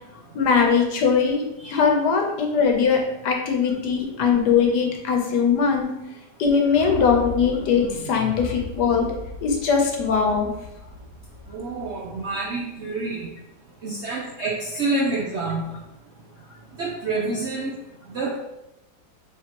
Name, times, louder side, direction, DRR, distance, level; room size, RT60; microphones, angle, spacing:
voice 1, 0.3-6.0 6.4-9.1 9.4-10.5, left 6 dB, 85° left, 2 dB, 1.3 m, -21 dB
sound 1, 6.7-12.7, left 2 dB, 60° left, 1.1 m, -37 dB
voice 2, 11.5-13.3 13.8-15.6 16.8-17.7 18.1-18.4, right 3 dB, 70° right, -2 dB, 0.6 m, -27 dB
4.2 x 3.6 x 2.9 m, 0.90 s
omnidirectional pair, 1.7 m